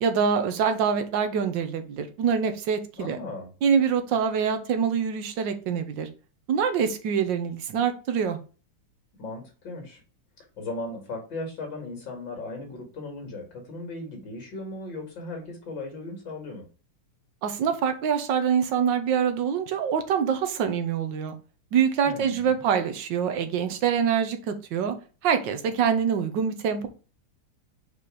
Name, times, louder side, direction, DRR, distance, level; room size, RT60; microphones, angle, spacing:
voice 1, 0.0-3.2 3.6-6.1 6.5-8.4 17.4-21.4 21.7-25.0 25.2-26.9, right 7 dB, 65° right, 8 dB, 1.4 m, -25 dB
voice 2, 3.0-3.5 9.2-10.0 10.4-16.6 22.0-22.6, left 2 dB, 55° left, 3 dB, 2.6 m, -37 dB
5.2 x 4.3 x 4.9 m, 0.35 s
omnidirectional pair, 2.4 m